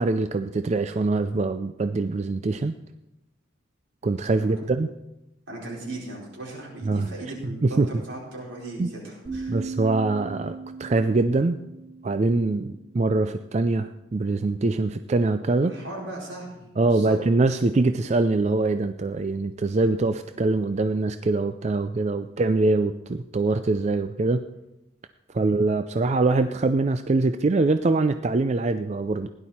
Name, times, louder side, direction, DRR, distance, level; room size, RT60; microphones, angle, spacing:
voice 1, 0.0-2.7 4.0-4.9 6.8-7.1 7.6-7.9 8.8-8.9 9.5-11.6 12.0-15.7 16.8-24.4 25.3-29.3, right 3 dB, 35° right, 10 dB, 0.4 m, -23 dB
voice 2, 5.5-9.6 15.6-17.2 25.4-25.5, right 2 dB, 80° right, -3 dB, 4.8 m, -37 dB
sound 1, 9.2-13.1, right 4 dB, 65° right, 4.8 m, -38 dB
16.5 x 11.0 x 4.3 m, 0.92 s
head